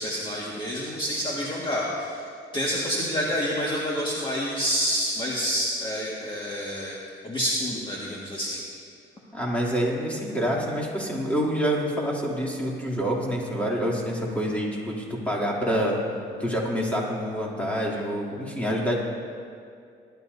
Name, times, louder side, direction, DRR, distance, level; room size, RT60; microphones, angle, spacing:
voice 1, 0.0-2.2 2.5-6.9 7.2-8.6, equal, 25° left, -5 dB, 1.8 m, -28 dB
voice 2, 9.3-16.0 16.4-19.0, equal, 5° left, -4 dB, 3.0 m, -27 dB
19.5 x 12.0 x 2.7 m, 2.3 s
cardioid pair, 90°, 20 cm